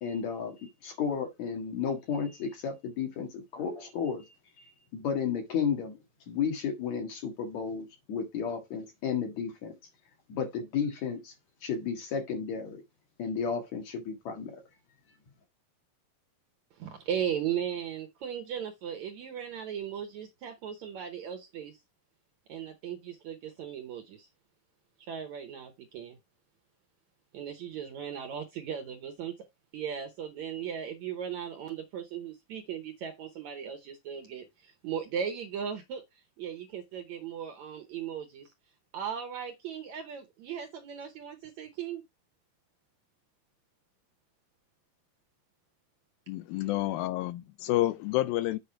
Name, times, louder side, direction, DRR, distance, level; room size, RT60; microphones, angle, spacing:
voice 1, 0.0-6.0 6.3-9.7 10.3-11.3 11.6-12.8 13.2-14.6, left 6 dB, 55° left, 2.8 m, -33 dB
voice 2, 16.8-21.8 22.5-24.3 25.1-26.2 27.3-29.3 29.7-36.0 36.4-38.5 38.9-42.0, right 8 dB, 70° right, 1.8 m, -37 dB
voice 3, 46.3-48.6, left 16 dB, 80° left, 2.3 m, -29 dB
8.4 x 5.1 x 4.5 m
omnidirectional pair, 4.3 m